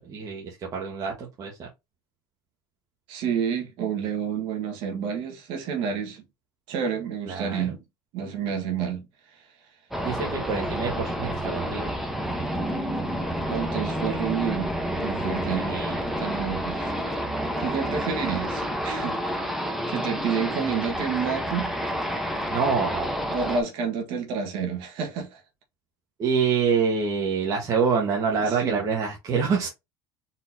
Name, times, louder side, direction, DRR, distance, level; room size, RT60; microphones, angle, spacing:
voice 1, 0.0-1.7 7.2-7.7 10.0-11.9 15.5-16.0 22.5-23.2 26.2-29.7, right 5 dB, 40° right, 1.4 m, -26 dB
voice 2, 3.1-6.2 6.7-7.8 8.1-9.0 13.5-14.7 15.0-15.8 16.2-16.9 17.6-19.2 19.9-21.7 23.3-25.4 28.4-28.8, right 7 dB, 70° right, 1.5 m, -29 dB
sound 1, 9.9-23.6, equal, 5° right, 1.0 m, -29 dB
4.3 x 3.8 x 2.8 m
cardioid pair, 125°, 9 cm